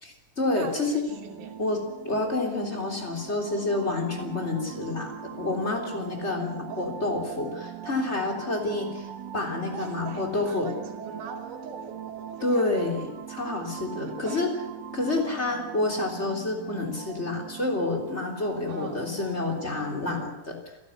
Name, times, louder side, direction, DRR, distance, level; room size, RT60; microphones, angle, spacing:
voice 1, 0.0-1.0 1.6-9.1 9.3-10.7 12.4-14.5 14.9-20.6, left 2 dB, 20° left, 2 dB, 3.6 m, -29 dB
voice 2, 0.5-1.5 6.7-6.9 9.7-13.0 14.2-14.4 18.7-19.0, right 5 dB, 60° right, 2 dB, 4.2 m, -42 dB
sound 1, 1.1-20.3, right 10 dB, 75° right, 2.8 m, -41 dB
28.0 x 12.5 x 9.7 m, 0.96 s
omnidirectional pair, 4.1 m